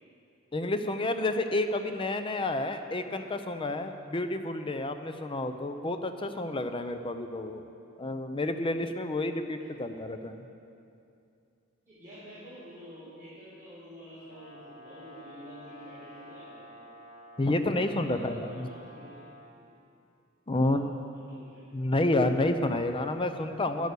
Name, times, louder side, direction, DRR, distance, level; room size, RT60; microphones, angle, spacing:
voice 1, 0.5-7.6 8.0-10.4 17.4-18.7 20.5-20.9 21.7-23.9, left 2 dB, 25° left, 8 dB, 0.6 m, -30 dB
voice 2, 11.9-16.7 17.6-19.2 19.6-19.7 20.5-20.8 21.1-21.6, equal, 15° right, -13 dB, 3.7 m, -49 dB
Brass instrument, 14.3-19.5, equal, 85° left, 2.0 m, -50 dB
11.0 x 9.5 x 6.8 m, 2.6 s
head